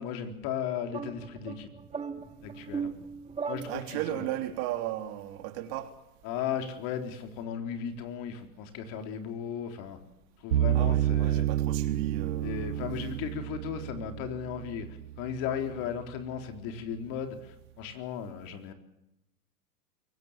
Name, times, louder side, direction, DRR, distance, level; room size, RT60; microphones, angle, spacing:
voice 1, 0.0-1.7 2.4-2.9 3.5-4.3 6.2-10.0 10.4-11.5 12.4-14.9 15.2-18.7, left 8 dB, 45° left, 3.9 m, -36 dB
sound 1, 0.9-4.4, right 5 dB, 15° right, 1.7 m, -38 dB
voice 2, 3.7-5.9 10.7-12.8, right 13 dB, 50° right, 3.3 m, -36 dB
sound 2, 10.5-15.6, right 12 dB, 85° right, 0.8 m, -29 dB
23.5 x 17.5 x 7.4 m
hypercardioid pair, 110°, 45 cm